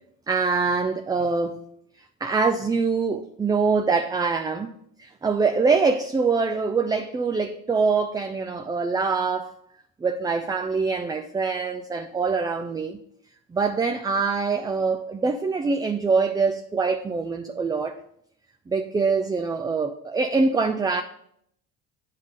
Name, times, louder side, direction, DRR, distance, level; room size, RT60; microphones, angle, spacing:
voice 1, 0.3-1.6 2.2-4.7 5.0-9.5 10.0-13.0 13.5-18.0 18.7-21.0, right 4 dB, 15° right, 0.3 m, -24 dB
8.9 x 3.8 x 6.4 m
cardioid pair, 105°, 31 cm